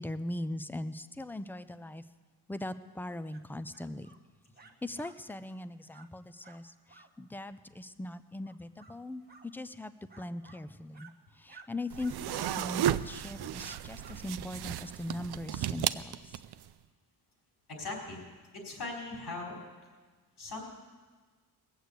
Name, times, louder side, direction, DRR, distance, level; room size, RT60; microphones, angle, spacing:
voice 1, 0.0-2.0 2.5-4.1 4.8-16.4, left 1 dB, 5° left, 13 dB, 0.4 m, -40 dB
sound 1, 3.3-3.4 3.7-4.2 4.5-5.2 5.5-5.6 5.9-6.1 6.4-6.6 6.9-7.1 8.4-9.0 9.3-9.5 10.1-10.6 10.9-11.1 11.5-11.7 11.9-12.1 12.4-12.6 13.2-13.4 13.6-14.2, right 4 dB, 25° right, 1.0 m, -55 dB
sound 2, 11.9-16.7, right 11 dB, 80° right, 0.5 m, -34 dB
voice 2, 17.7-18.2 18.5-19.6 20.4-20.6, left 3 dB, 80° left, -1 dB, 4.4 m, -39 dB
20.0 x 8.0 x 8.2 m, 1.4 s
wide cardioid pair, 155°, 38 cm